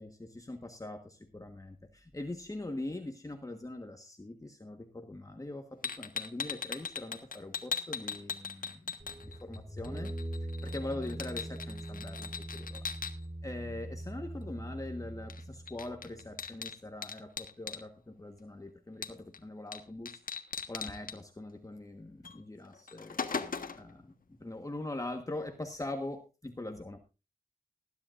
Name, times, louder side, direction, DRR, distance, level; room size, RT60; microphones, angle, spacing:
voice 1, 0.0-10.2 10.4-12.9 13.4-20.2 20.7-23.2 23.7-24.1 24.4-27.0, left 2 dB, 20° left, 5 dB, 1.4 m, -42 dB
sound 1, 5.8-9.6 9.8-13.1 15.3-15.4 15.7-17.8 19.0-19.4 19.7-19.8 20.1-21.2 22.2-22.4 22.7-23.9, left 5 dB, 65° left, 1.4 m, -39 dB
sound 2, 9.0-16.4, right 1 dB, 30° right, 3.4 m, -42 dB
20.0 x 10.5 x 2.6 m, 0.29 s
wide cardioid pair, 80°, 15 cm